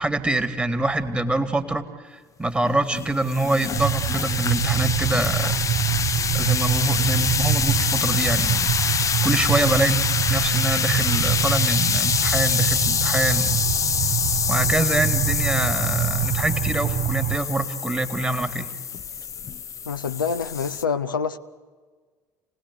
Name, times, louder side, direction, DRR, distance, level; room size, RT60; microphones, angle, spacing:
voice 1, 0.0-1.8 2.1-5.5 6.3-13.6 14.5-18.7, right 2 dB, 10° right, 2.0 m, -25 dB
sound 1, 2.6-20.8, left 7 dB, 30° left, 0.7 m, -26 dB
sound 2, 3.7-17.4, right 11 dB, 50° right, 0.9 m, -25 dB
voice 2, 19.9-21.4, left 6 dB, 80° left, 0.7 m, -26 dB
28.5 x 18.5 x 8.1 m
figure-of-eight pair, 60°, 11 cm